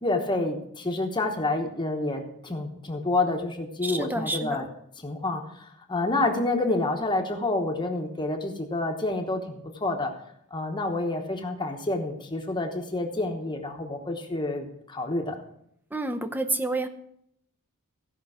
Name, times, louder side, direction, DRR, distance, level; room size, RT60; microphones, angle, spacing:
voice 1, 0.0-4.7 5.0-10.1 10.5-15.3, left 2 dB, 20° left, 3 dB, 1.0 m, -28 dB
voice 2, 3.8-4.7 15.9-16.9, right 2 dB, 10° right, 9 dB, 0.6 m, -29 dB
16.0 x 5.5 x 4.8 m, 0.72 s
head